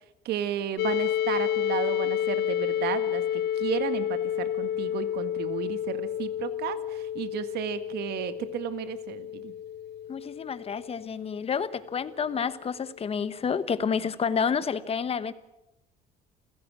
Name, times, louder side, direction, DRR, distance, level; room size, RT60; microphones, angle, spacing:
voice 1, 0.3-9.5, right 10 dB, 75° right, 11 dB, 1.7 m, -33 dB
sound 1, 0.8-12.5, left 10 dB, 75° left, 0.6 m, -31 dB
voice 2, 10.1-15.3, left 6 dB, 35° left, 14 dB, 1.2 m, -29 dB
28.5 x 16.0 x 6.2 m, 0.92 s
cardioid pair, 110°, 17 cm